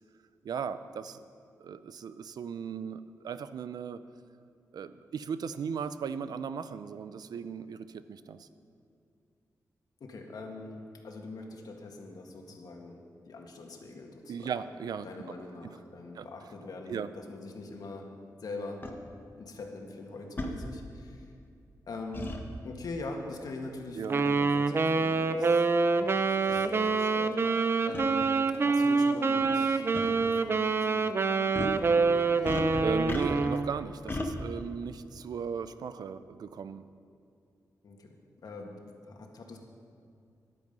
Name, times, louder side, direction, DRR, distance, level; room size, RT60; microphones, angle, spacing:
voice 1, 0.4-1.2 1.6-4.0 4.7-8.5 14.3-15.1 15.6-15.8 16.1-16.3 16.9-17.1 24.0-24.2 32.5-36.8, right 6 dB, 85° right, 13 dB, 0.5 m, -37 dB
voice 2, 10.0-13.0 13.3-14.5 15.0-18.1 18.4-18.8 19.4-21.3 21.9-22.3 22.6-25.7 25.9-28.3 28.7-32.1 37.8-38.2 38.4-39.6, left 3 dB, 70° left, 2 dB, 1.8 m, -43 dB
sound 1, 18.8-18.9 20.4-20.5 22.1-22.4 24.2-24.4 25.2-25.3 26.1-26.2 26.5-26.6 27.9-28.1 29.4-29.6 29.9-30.0 31.5-31.8 32.4-33.6 34.1-34.3, left 2 dB, 30° left, 1.3 m, -35 dB
Wind instrument woodwind instrument, 24.1-33.7, right 4 dB, 35° right, 0.5 m, -26 dB
14.5 x 11.0 x 5.4 m, 2.4 s
wide cardioid pair, 115°, 7 cm